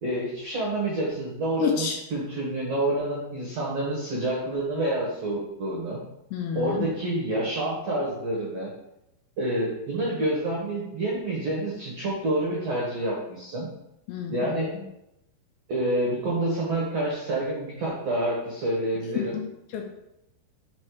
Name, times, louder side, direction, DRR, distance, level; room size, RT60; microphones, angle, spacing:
voice 1, 0.0-6.0 6.5-8.7 9.4-13.7 14.3-14.7 15.7-19.3, right 1 dB, 80° right, -4 dB, 1.4 m, -28 dB
voice 2, 1.6-2.0 6.3-6.9 14.1-14.9 19.2-19.9, left 8 dB, 85° left, 2 dB, 2.3 m, -30 dB
6.3 x 4.1 x 4.7 m, 0.86 s
omnidirectional pair, 5.0 m